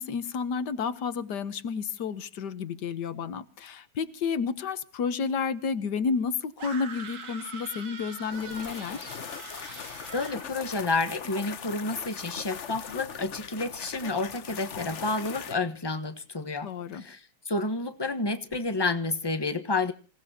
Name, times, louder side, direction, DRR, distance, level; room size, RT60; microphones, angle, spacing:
voice 1, 0.0-9.1 16.6-17.0, left 5 dB, 70° left, 1.6 m, -31 dB
sound 1, 6.6-10.5, right 5 dB, 70° right, 2.6 m, -42 dB
sound 2, 8.3-15.6, left 7 dB, 50° left, 1.1 m, -40 dB
voice 2, 10.1-19.9, left 3 dB, 15° left, 1.1 m, -30 dB
26.5 x 18.0 x 2.9 m
omnidirectional pair, 1.9 m